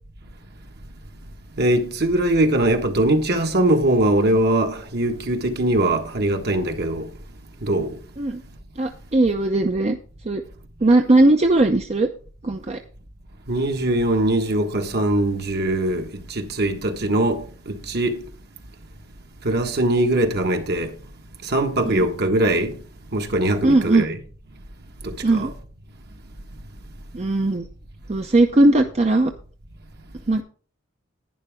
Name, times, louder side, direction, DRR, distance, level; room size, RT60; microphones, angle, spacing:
voice 1, 1.6-7.1 7.6-8.0 13.5-18.2 19.4-20.9 21.4-22.8 23.1-24.2 25.0-25.5, right 1 dB, 55° right, 1.4 m, -21 dB
voice 2, 8.8-10.0 10.2-10.4 10.8-12.1 12.4-12.8 21.8-22.0 23.6-24.0 25.2-25.5 27.1-27.7 28.1-29.3 30.3-30.4, right 2 dB, 35° right, 0.6 m, -18 dB
11.0 x 9.8 x 3.5 m
head